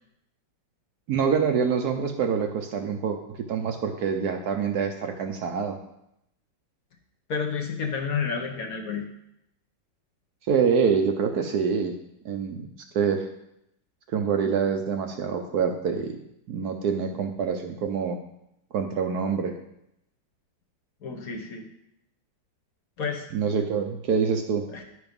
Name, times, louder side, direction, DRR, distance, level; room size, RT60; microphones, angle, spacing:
voice 1, 1.1-5.8 10.5-12.0 12.2-12.7 12.9-13.3 14.1-16.2 16.5-18.2 18.7-19.6 23.3-24.7, right 6 dB, 65° right, 5 dB, 1.1 m, -26 dB
voice 2, 7.3-9.1 21.0-21.7 23.0-23.3 24.7-24.8, left 5 dB, 55° left, 3 dB, 1.3 m, -30 dB
10.0 x 4.9 x 5.2 m, 0.79 s
omnidirectional pair, 2.0 m